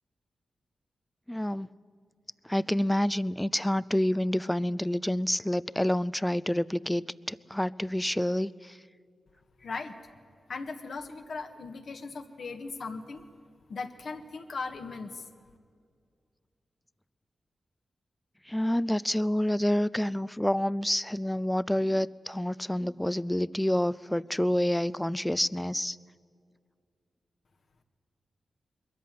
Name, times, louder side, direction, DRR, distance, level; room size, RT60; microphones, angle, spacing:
voice 1, 1.3-1.7 2.5-8.8 18.5-26.0, left 1 dB, 10° left, 19 dB, 0.5 m, -28 dB
voice 2, 9.6-9.9 10.5-13.2 13.7-15.2, left 4 dB, 70° left, 5 dB, 1.6 m, -38 dB
21.5 x 14.0 x 9.5 m, 2.2 s
cardioid pair, 50°, 0 cm